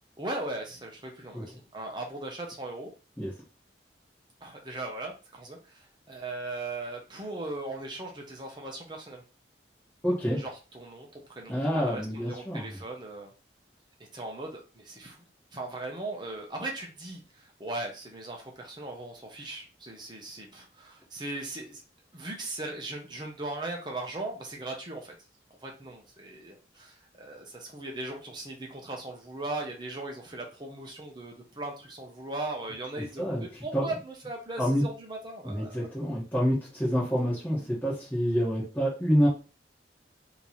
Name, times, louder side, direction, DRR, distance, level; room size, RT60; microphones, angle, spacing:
voice 1, 0.2-2.9 4.4-9.2 10.3-13.3 14.1-15.2 15.5-21.8 22.1-25.1 25.6-35.9, right 2 dB, 25° right, 0 dB, 0.9 m, -38 dB
voice 2, 10.0-10.4 11.5-12.7 33.2-33.4 33.7-33.9 34.6-34.8 35.4-39.3, equal, 10° left, -9 dB, 1.3 m, -27 dB
3.3 x 2.9 x 4.1 m, 0.33 s
head